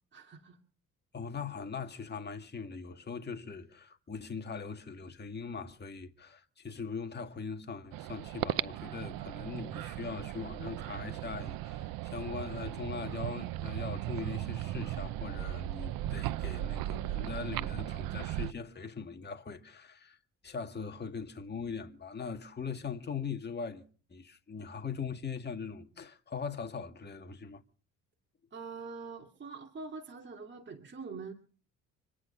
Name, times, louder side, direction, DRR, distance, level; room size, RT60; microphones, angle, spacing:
voice 1, 0.1-0.6 28.5-31.3, right 4 dB, 35° right, 2.5 m, -44 dB
voice 2, 1.1-20.2 20.4-23.8 24.1-27.6, left 5 dB, 30° left, 1.9 m, -41 dB
sound 1, 7.9-18.5, right 14 dB, 90° right, 0.7 m, -37 dB
26.0 x 9.8 x 5.5 m
cardioid pair, 110°, 34 cm